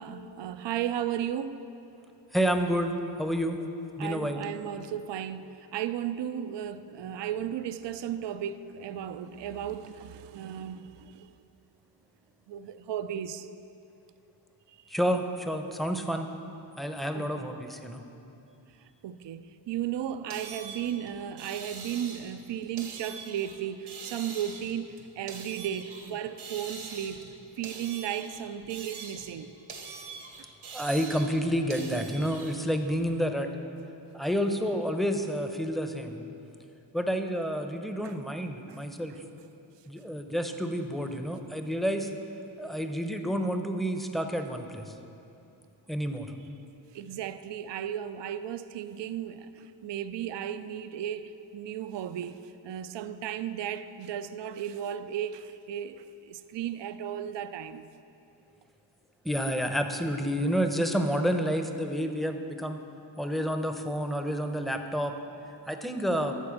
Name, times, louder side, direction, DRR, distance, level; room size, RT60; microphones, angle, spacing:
voice 1, 0.0-1.7 4.0-11.3 12.5-13.5 14.7-14.9 17.1-17.5 19.0-27.3 27.6-29.5 30.4-30.5 38.0-38.1 38.7-38.8 46.9-57.9, right 10 dB, 65° right, 0.5 m, -35 dB
voice 2, 2.3-3.6 4.0-4.5 14.9-16.3 16.8-18.0 30.7-33.5 34.1-36.2 36.9-39.1 39.9-42.1 42.6-44.9 45.9-46.3 59.2-62.8 63.2-65.1 65.7-66.4, equal, ahead, 0.7 m, -29 dB
sound 1, 20.3-22.4 22.8-23.6 23.9-26.1 26.4-27.3 27.6-29.4 29.7-32.5, right 4 dB, 85° right, 1.4 m, -43 dB
12.5 x 4.3 x 7.2 m
cardioid pair, 65°, 48 cm